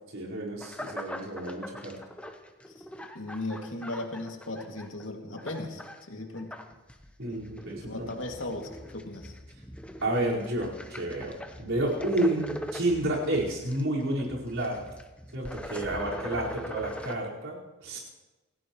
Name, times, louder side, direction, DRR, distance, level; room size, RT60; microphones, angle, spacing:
voice 1, 0.1-1.9 7.2-7.8 10.0-14.8 15.3-17.6 17.8-18.0, right 1 dB, 70° right, -5 dB, 4.8 m, -30 dB
sound 1, 0.6-5.1 5.4-6.0 6.4-17.1, left 1 dB, 5° left, 0.9 m, -42 dB
voice 2, 3.1-5.8 6.1-6.5 7.6-9.4 16.4-16.6, left 2 dB, 70° left, 2 dB, 2.4 m, -37 dB
27.5 x 16.5 x 3.1 m, 1.1 s
head